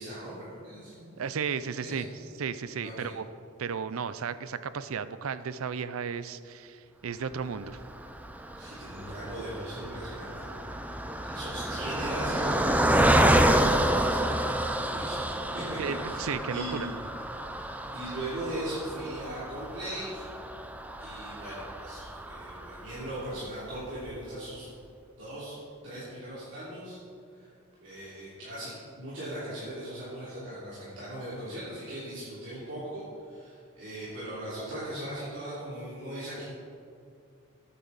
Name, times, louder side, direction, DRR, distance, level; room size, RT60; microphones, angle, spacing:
voice 1, 0.0-1.1 1.8-2.0 2.8-3.1 8.6-10.8 11.2-13.0 14.0-14.3 14.9-15.2 15.5-16.8 17.5-20.3 21.0-24.7 25.2-25.6 25.8-27.0 27.3-27.5 27.8-33.0 33.3-36.4, right 1 dB, 60° right, -10 dB, 3.2 m, -39 dB
voice 2, 1.2-2.1 2.4-3.2 3.6-7.8 15.8-16.6, right 6 dB, 85° right, 14 dB, 0.5 m, -34 dB
Car passing by, 7.7-23.2 23.7-23.8 24.1-24.3, right 1 dB, 5° right, 0.5 m, -29 dB
13.5 x 9.5 x 4.1 m, 2.3 s
head